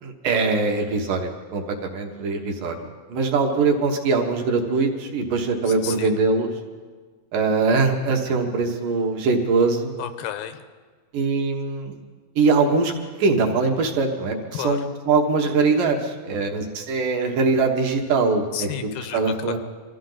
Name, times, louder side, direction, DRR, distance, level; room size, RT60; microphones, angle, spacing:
voice 1, 0.0-2.8 3.1-6.5 7.3-9.9 11.1-12.0 12.4-12.9 13.2-18.7 19.1-19.6, right 4 dB, 70° right, 2 dB, 2.8 m, -22 dB
voice 2, 5.7-6.1 10.0-10.6 14.5-14.9 18.5-19.6, left 10 dB, 90° left, 9 dB, 2.7 m, -32 dB
24.0 x 14.5 x 4.0 m, 1.5 s
omnidirectional pair, 4.1 m